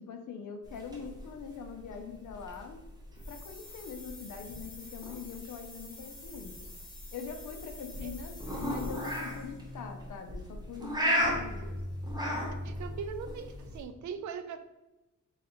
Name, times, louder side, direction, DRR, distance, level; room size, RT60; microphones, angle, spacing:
voice 1, 0.0-2.8 3.3-6.5 7.1-11.8, left 6 dB, 65° left, 5 dB, 0.6 m, -43 dB
sound 1, 0.6-13.8, equal, 10° right, 0.8 m, -37 dB
sound 2, 3.2-9.6, left 2 dB, 25° left, 1.2 m, -50 dB
sound 3, 8.4-14.0, left 1 dB, 40° left, 0.9 m, -43 dB
voice 2, 12.6-14.6, right 6 dB, 60° right, 8 dB, 0.4 m, -40 dB
4.0 x 2.5 x 4.2 m, 1.0 s
wide cardioid pair, 165°, 33 cm